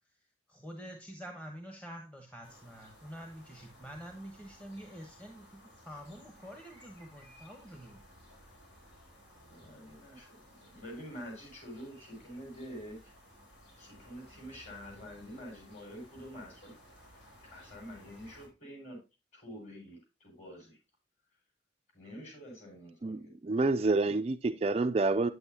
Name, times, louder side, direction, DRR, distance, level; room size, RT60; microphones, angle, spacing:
voice 1, 0.5-8.0, equal, 10° left, 1.0 m, -47 dB
sound 1, 2.4-18.5, equal, 80° left, 4.2 m, -57 dB
voice 2, 9.5-13.1 13.8-16.7 17.4-19.0 19.3-20.8 21.9-23.3 23.6-23.7, equal, 40° left, 6.0 m, -47 dB
voice 3, 23.0-25.3, right 3 dB, 35° right, 0.3 m, -28 dB
9.5 x 8.0 x 2.8 m
head